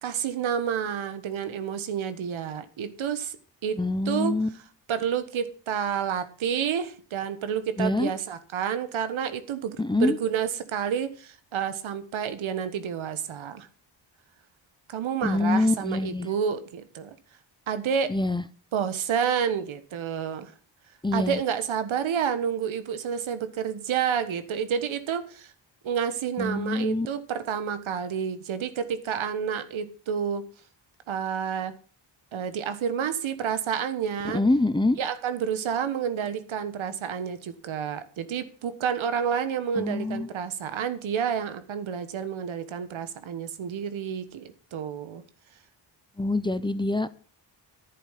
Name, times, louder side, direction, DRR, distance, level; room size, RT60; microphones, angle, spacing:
voice 1, 0.0-3.4 3.6-4.3 4.9-13.7 14.9-17.1 17.7-18.1 18.7-20.5 21.1-25.5 25.8-30.5 31.1-31.7 32.3-34.4 35.0-45.2, right 7 dB, 85° right, 1.4 m, -29 dB
voice 2, 3.8-4.5 7.8-8.1 9.8-10.2 15.2-16.3 18.1-18.4 21.0-21.4 26.4-27.1 34.3-35.0 39.8-40.3 46.2-47.1, left 2 dB, 10° left, 0.5 m, -25 dB
11.0 x 8.4 x 5.7 m
wide cardioid pair, 110°, 46 cm